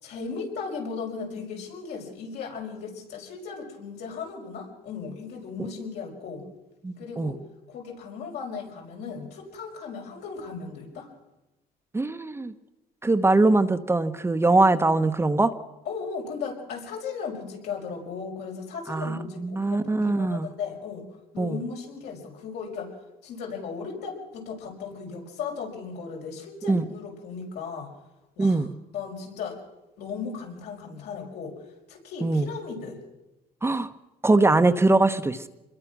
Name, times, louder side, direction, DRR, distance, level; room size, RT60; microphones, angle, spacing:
voice 1, 0.0-6.5 7.0-7.4 7.7-11.1 15.9-21.0 21.3-22.9 23.2-27.9 28.4-28.6 28.9-29.6 30.0-31.6 31.9-33.0, left 5 dB, 75° left, 0 dB, 5.7 m, -36 dB
voice 2, 6.8-7.4 11.9-12.5 13.0-15.5 18.9-20.5 21.4-21.6 26.6-26.8 28.4-28.7 32.2-32.5 33.6-33.9 34.2-35.5, right 2 dB, 15° right, 8 dB, 1.0 m, -22 dB
26.0 x 21.5 x 6.1 m, 0.97 s
cardioid pair, 110°, 17 cm